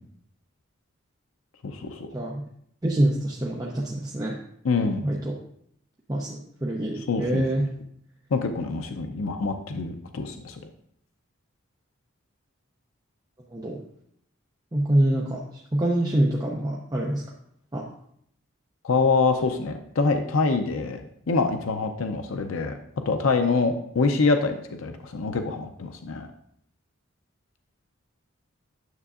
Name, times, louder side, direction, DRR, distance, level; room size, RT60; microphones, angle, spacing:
voice 1, 1.6-2.1 4.6-5.0 7.1-7.4 8.3-10.6 18.8-21.0 21.3-22.8 23.1-26.3, left 4 dB, 75° left, 6 dB, 0.5 m, -25 dB
voice 2, 2.1-2.5 2.8-4.4 5.0-5.4 6.1-7.7 13.5-13.8 14.7-17.2 17.7-17.9, right 1 dB, 20° right, -3 dB, 0.6 m, -25 dB
9.4 x 6.7 x 2.4 m, 0.69 s
head